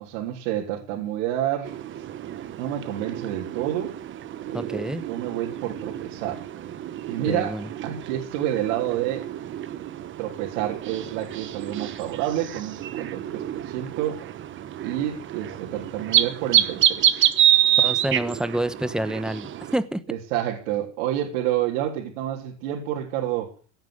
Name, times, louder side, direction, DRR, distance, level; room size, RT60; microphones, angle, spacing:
voice 1, 0.0-1.7 2.6-4.0 4.4-6.4 7.1-9.3 10.2-14.3 14.8-17.3 20.1-23.5, right 12 dB, 65° right, -1 dB, 3.5 m, -29 dB
sound 1, 1.6-19.8, right 11 dB, 30° right, 1.2 m, -27 dB
voice 2, 4.5-5.0 7.2-7.7 17.8-19.5 19.7-20.0, right 1 dB, ahead, 13 dB, 1.0 m, -28 dB
16.5 x 9.2 x 8.0 m, 0.40 s
supercardioid pair, 135°, 38 cm